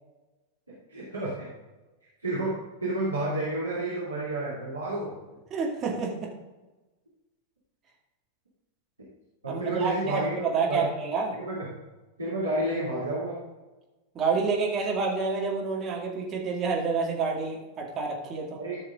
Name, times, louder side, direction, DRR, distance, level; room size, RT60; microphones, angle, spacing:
voice 1, 0.7-1.5 2.2-2.5 2.8-5.1 9.4-10.9 11.5-11.7 12.2-13.4 18.6-18.8, right 2 dB, 80° right, -8 dB, 2.7 m, -30 dB
voice 2, 5.5-6.3 9.5-11.4 14.1-18.5, right 4 dB, 30° right, -1 dB, 2.2 m, -28 dB
14.5 x 6.4 x 3.7 m, 1.1 s
figure-of-eight pair, 90°, 0 cm